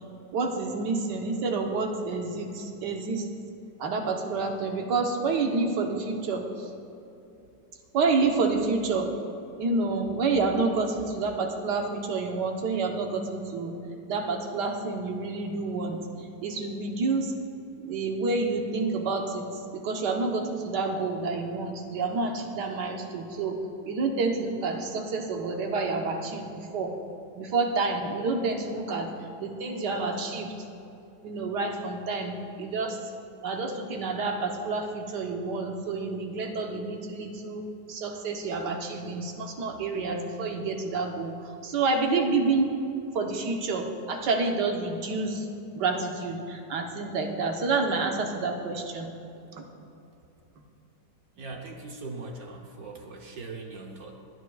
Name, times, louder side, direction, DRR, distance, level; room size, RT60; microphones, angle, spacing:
voice 1, 0.3-3.3 3.8-6.5 7.9-9.1 9.6-13.8 14.1-16.0 16.4-17.3 17.8-19.4 19.7-23.6 23.9-26.9 27.4-29.1 29.4-30.5 31.2-33.0 33.4-41.3 41.6-42.7 43.1-45.5 45.7-49.1 49.6-49.7, right 3 dB, 80° right, 3 dB, 1.6 m, -28 dB
voice 2, 51.4-54.2, right 3 dB, 60° right, 2 dB, 1.3 m, -40 dB
23.5 x 9.6 x 2.4 m, 2.8 s
omnidirectional pair, 1.8 m